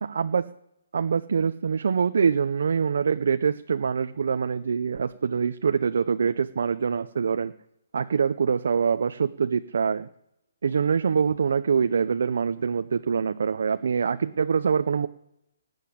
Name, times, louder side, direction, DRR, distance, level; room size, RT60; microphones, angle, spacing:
voice 1, 0.0-0.5 0.9-7.5 7.9-10.1 10.6-15.1, right 6 dB, 55° right, 9 dB, 0.6 m, -24 dB
18.5 x 8.2 x 8.5 m, 0.84 s
hypercardioid pair, 175°, 0 cm